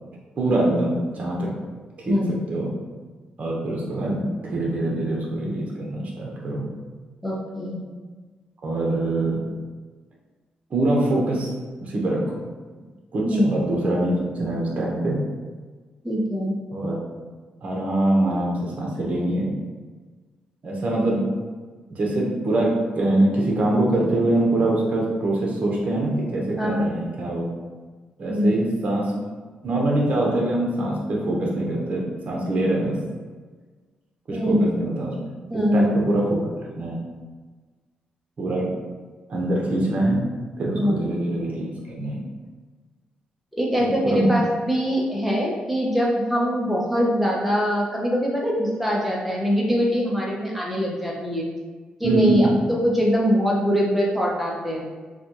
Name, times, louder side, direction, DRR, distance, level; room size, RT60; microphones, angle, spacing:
voice 1, 0.3-1.5 2.1-2.2 2.5-2.7 3.4-6.6 8.6-9.4 10.7-11.5 11.8-12.4 13.1-14.1 14.4-15.2 16.7-16.9 17.6-19.6 20.6-21.2 21.9-22.7 22.9-27.5 28.2-29.1 29.6-32.9 34.3-35.1 35.7-36.4 36.7-37.0 38.4-38.7 39.3-40.2 40.6-41.6 42.0-42.2 44.0-44.3 52.0-52.6, right 1 dB, 50° right, -3 dB, 0.9 m, -23 dB
voice 2, 2.1-2.4 7.2-7.8 13.2-13.5 16.0-16.5 26.6-27.0 28.3-28.5 34.3-34.6 35.5-35.9 40.7-40.9 43.6-51.5 52.0-54.9, equal, 5° right, -3 dB, 0.8 m, -23 dB
4.0 x 2.3 x 3.0 m, 1.4 s
cardioid pair, 90°, 3 cm